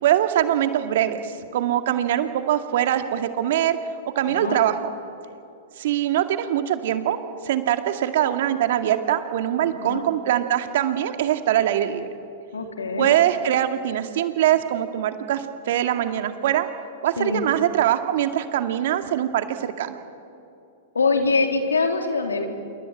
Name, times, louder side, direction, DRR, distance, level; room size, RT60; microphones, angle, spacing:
voice 1, 0.0-3.8 4.2-4.8 5.8-7.2 7.4-12.1 13.0-16.7 17.0-20.0, right 11 dB, 65° right, 7 dB, 2.1 m, -22 dB
voice 2, 4.3-4.6 9.6-10.1 12.5-13.2 17.2-17.4 20.9-22.5, left 4 dB, 90° left, 4 dB, 3.5 m, -24 dB
27.5 x 23.0 x 8.8 m, 2.6 s
hypercardioid pair, 110°, 0 cm